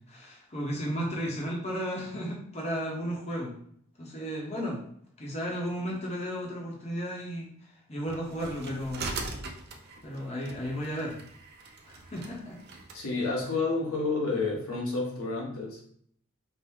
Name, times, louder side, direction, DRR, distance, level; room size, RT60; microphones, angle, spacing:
voice 1, 0.1-3.6 4.0-4.8 5.2-7.5 7.9-9.1 10.0-11.2 11.9-12.6, equal, 30° left, -2 dB, 0.8 m, -34 dB
sound 1, 8.1-13.0, right 3 dB, 50° right, 0.5 m, -41 dB
voice 2, 12.9-15.8, left 3 dB, 85° left, -2 dB, 1.1 m, -30 dB
4.3 x 2.1 x 3.5 m, 0.63 s
head